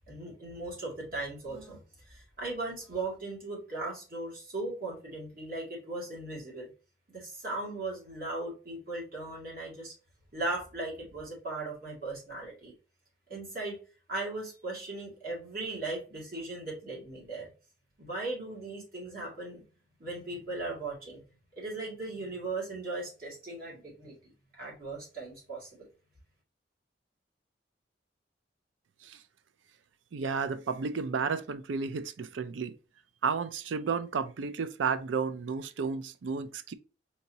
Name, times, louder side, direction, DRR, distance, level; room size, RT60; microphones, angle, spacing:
voice 1, 0.1-1.8 2.1-6.7 7.1-9.9 10.3-12.7 13.3-13.8 14.1-17.5 18.0-19.6 20.0-21.2 21.6-24.1 24.6-25.9, right 2 dB, 55° right, 2.3 m, -38 dB
voice 2, 30.1-32.7 33.2-36.7, right 5 dB, 90° right, 0.4 m, -32 dB
4.5 x 2.9 x 2.7 m
head